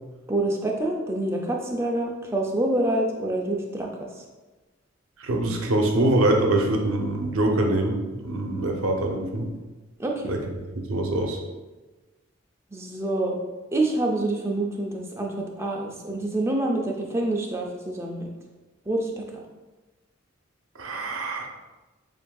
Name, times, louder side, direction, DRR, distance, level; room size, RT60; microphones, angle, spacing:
voice 1, 0.3-3.9 10.0-10.2 12.7-13.4 13.7-18.2 18.9-19.2, right 1 dB, 15° right, 0 dB, 0.4 m, -26 dB
voice 2, 5.2-9.5 10.3-10.4 10.7-11.4 20.8-21.5, right 1 dB, 90° right, 2 dB, 0.6 m, -24 dB
7.1 x 2.6 x 2.3 m, 1.2 s
head